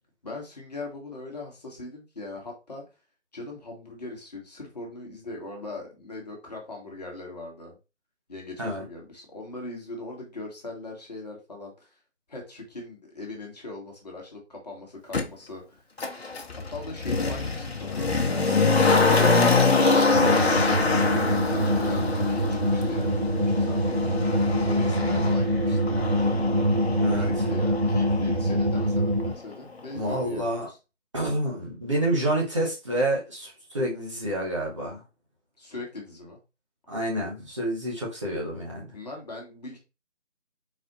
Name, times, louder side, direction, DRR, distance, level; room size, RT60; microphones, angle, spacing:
voice 1, 0.2-2.8 3.3-7.8 8.3-12.0 12.3-15.9 16.7-19.3 19.6-24.2 24.7-25.8 27.1-30.8 35.6-36.4 38.9-39.8, left 2 dB, 35° left, 1.4 m, -40 dB
Motor vehicle (road), 15.1-15.2 16.0-28.9 29.2-29.3, left 3 dB, 60° left, 1.0 m, -25 dB
sound 1, 20.1-29.3, equal, 40° right, 0.4 m, -25 dB
voice 2, 27.0-27.3 29.9-30.7 31.1-35.0 36.9-39.0, right 1 dB, 25° right, 1.0 m, -28 dB
4.2 x 2.6 x 4.0 m
figure-of-eight pair, 160°, 36 cm